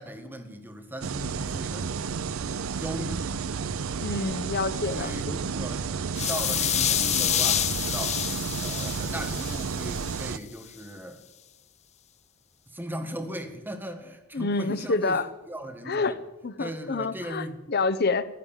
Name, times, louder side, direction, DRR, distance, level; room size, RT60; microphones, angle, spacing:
voice 1, 0.0-1.9 2.8-3.3 4.8-5.9 6.3-8.2 8.6-11.2 12.7-15.2 15.5-16.2 16.6-17.6, right 1 dB, 10° right, 5 dB, 1.7 m, -38 dB
sound 1, 1.0-10.4, right 5 dB, 75° right, 0.5 m, -32 dB
voice 2, 4.0-5.4 14.3-15.3 15.9-16.2 16.4-18.3, left 3 dB, 50° left, 13 dB, 0.8 m, -28 dB
sound 2, 6.1-10.2, left 11 dB, 30° left, 0.4 m, -28 dB
15.5 x 11.0 x 7.4 m, 1.1 s
head